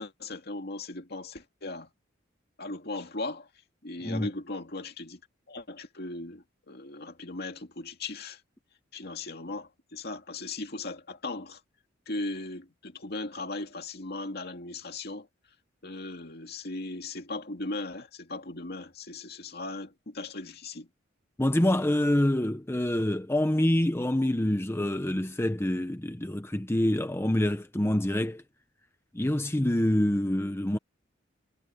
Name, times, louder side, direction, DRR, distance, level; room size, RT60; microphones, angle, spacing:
voice 1, 0.0-1.9 2.6-3.5 3.8-5.2 5.5-8.4 8.9-11.6 12.1-15.3 15.8-20.9, left 2 dB, 55° left, 2.2 m, -38 dB
voice 2, 21.4-28.4 29.1-30.8, left 1 dB, 15° left, 0.8 m, -26 dB
head